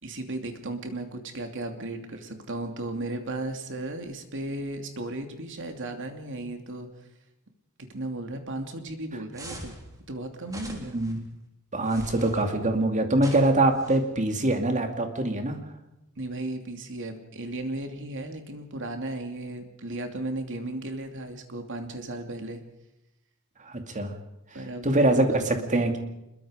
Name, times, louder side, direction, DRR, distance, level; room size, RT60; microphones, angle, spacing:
voice 1, 0.0-6.9 7.8-9.7 10.1-11.0 16.2-22.6 24.5-25.9, right 2 dB, 60° right, 5 dB, 2.8 m, -35 dB
sound 1, 9.3-9.8 10.5-11.1 11.9-12.4 13.2-14.0, right 1 dB, 15° right, 3.6 m, -42 dB
voice 2, 11.7-15.6 23.6-24.1 24.8-26.0, right 2 dB, 35° right, 5 dB, 2.6 m, -24 dB
26.0 x 22.0 x 5.1 m, 0.89 s
head